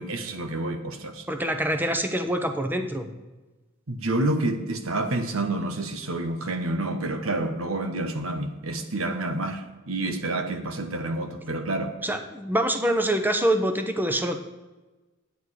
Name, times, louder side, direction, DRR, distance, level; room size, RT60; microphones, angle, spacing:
voice 1, 0.0-1.3 3.9-11.9, right 2 dB, 85° right, 8 dB, 1.2 m, -28 dB
voice 2, 1.3-3.1 12.0-14.4, right 1 dB, 10° right, 6 dB, 0.8 m, -25 dB
10.5 x 9.3 x 5.0 m, 1.1 s
head